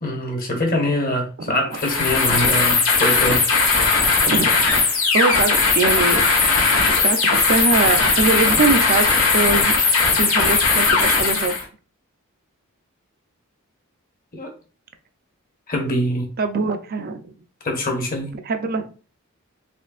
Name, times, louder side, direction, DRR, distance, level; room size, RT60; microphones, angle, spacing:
voice 1, 0.0-3.4 14.3-14.5 15.7-16.3 17.6-18.4, left 1 dB, 40° left, 1.1 m, -23 dB
sound 1, 1.7-11.6, left 4 dB, 70° left, 1.5 m, -18 dB
voice 2, 4.3-4.8 5.1-6.2 7.0-9.1 9.3-9.8 10.1-11.6 16.4-17.3 18.5-18.9, right 3 dB, 45° right, 0.5 m, -22 dB
4.3 x 3.3 x 2.4 m
head